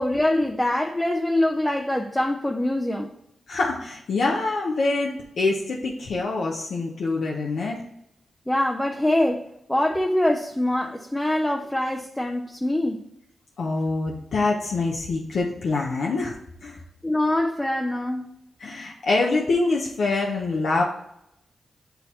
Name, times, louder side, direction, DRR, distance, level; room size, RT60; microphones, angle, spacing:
voice 1, 0.0-3.1 8.5-13.0 17.0-18.3, left 1 dB, 15° left, 0.7 m, -24 dB
voice 2, 3.5-7.8 13.6-16.3 16.6-16.8 18.6-20.8, left 3 dB, 75° left, 0.8 m, -25 dB
8.1 x 2.7 x 4.4 m
supercardioid pair, 45°, 0 cm